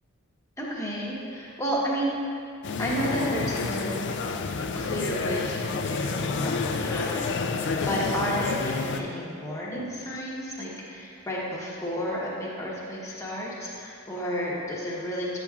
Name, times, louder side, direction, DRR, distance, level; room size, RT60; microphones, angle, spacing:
voice 1, 0.6-2.1 2.8-4.0 4.8-15.4, equal, 15° left, -5 dB, 1.1 m, -31 dB
sound 1, 2.6-9.0, left 4 dB, 55° left, 0.4 m, -29 dB
8.3 x 7.1 x 2.4 m, 2.4 s
head